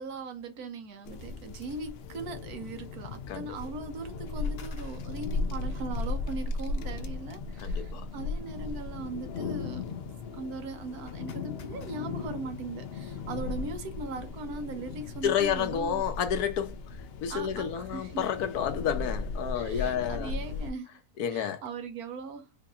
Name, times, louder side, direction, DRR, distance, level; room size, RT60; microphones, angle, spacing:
voice 1, 0.0-10.0 10.3-16.0 17.3-18.3 19.5-21.0 21.3-22.5, right 3 dB, 80° right, 1.4 m, -39 dB
sound 1, 1.1-20.7, left 3 dB, 60° left, 0.6 m, -36 dB
voice 2, 7.6-8.1 15.2-20.3 21.2-21.6, left 8 dB, 85° left, 1.3 m, -30 dB
4.6 x 2.8 x 2.4 m
omnidirectional pair, 1.6 m